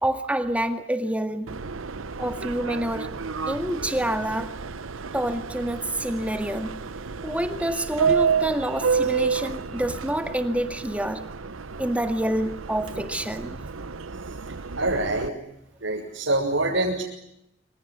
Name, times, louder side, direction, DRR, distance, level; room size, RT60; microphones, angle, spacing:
voice 1, 0.0-1.5 2.2-3.1 3.5-4.5 5.1-6.8 7.2-11.2 11.8-13.6, right 1 dB, 5° right, 7 dB, 1.9 m, -27 dB
Subway metro underground, 1.5-15.3, right 6 dB, 85° right, 0.9 m, -30 dB
voice 2, 14.5-15.3 15.8-17.0, right 2 dB, 65° right, -2 dB, 6.4 m, -25 dB
27.0 x 26.0 x 7.5 m, 0.82 s
head